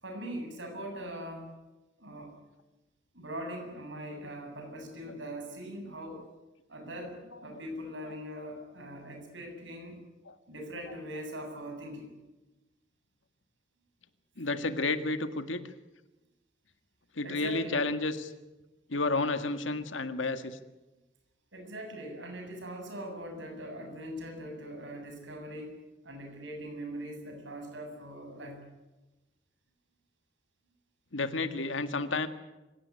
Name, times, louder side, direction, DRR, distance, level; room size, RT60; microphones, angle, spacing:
voice 1, 0.0-1.5 2.0-2.4 3.1-6.3 6.7-10.0 10.5-12.1 17.2-17.8 19.0-19.2 21.5-25.8 26.0-28.6, equal, 70° right, 4 dB, 7.4 m, -41 dB
voice 2, 14.4-15.6 17.2-18.3 18.9-20.6 31.1-32.3, left 3 dB, 80° left, 9 dB, 1.8 m, -31 dB
26.0 x 17.0 x 9.8 m, 1.1 s
head